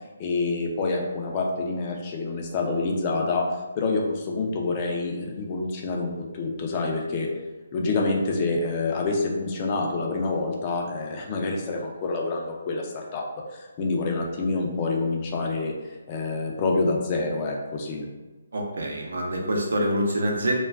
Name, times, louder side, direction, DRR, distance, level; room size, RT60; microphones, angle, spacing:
voice 1, 0.2-3.5 3.7-7.3 7.7-13.2 13.5-18.1, left 3 dB, 25° left, 0 dB, 0.4 m, -27 dB
voice 2, 18.5-20.5, equal, 80° right, 0 dB, 0.6 m, -26 dB
2.2 x 2.2 x 3.4 m, 1.2 s
hypercardioid pair, 165°, 0 cm